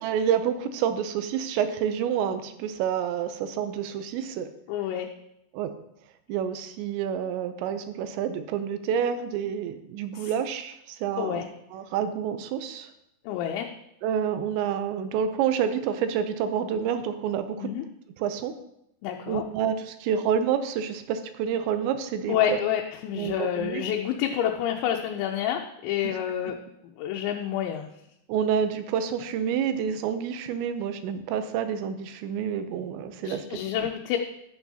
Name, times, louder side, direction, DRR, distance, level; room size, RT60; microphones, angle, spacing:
voice 1, 0.0-4.5 5.5-5.7 6.3-11.4 11.7-12.9 14.0-17.7 18.2-18.6 19.3-22.6 23.1-23.8 26.0-26.2 28.3-33.9, right 8 dB, 85° right, 10 dB, 3.0 m, -28 dB
voice 2, 4.7-5.1 10.2-10.3 11.2-11.5 13.3-13.7 17.6-17.8 19.0-19.4 22.3-26.5 26.8-27.9 33.2-34.2, left 10 dB, 85° left, 2 dB, 3.0 m, -28 dB
11.5 x 9.0 x 2.8 m, 0.80 s
omnidirectional pair, 5.1 m